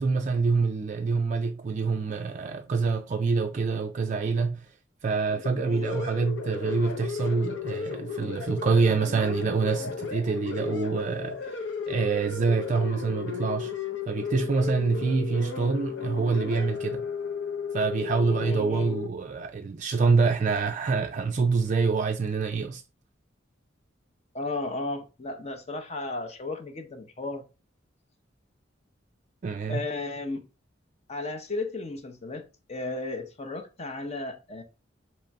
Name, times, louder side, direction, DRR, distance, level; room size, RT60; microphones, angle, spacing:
voice 1, 0.0-4.7 5.0-13.7 14.1-17.0 17.7-22.8 29.4-29.8, right 4 dB, 40° right, 0.4 m, -26 dB
sound 1, 5.3-19.1, left 6 dB, 70° left, 0.7 m, -34 dB
voice 2, 18.3-18.9 24.3-27.5 29.7-30.4 31.1-34.6, left 2 dB, 35° left, 0.7 m, -34 dB
3.8 x 3.1 x 4.5 m
head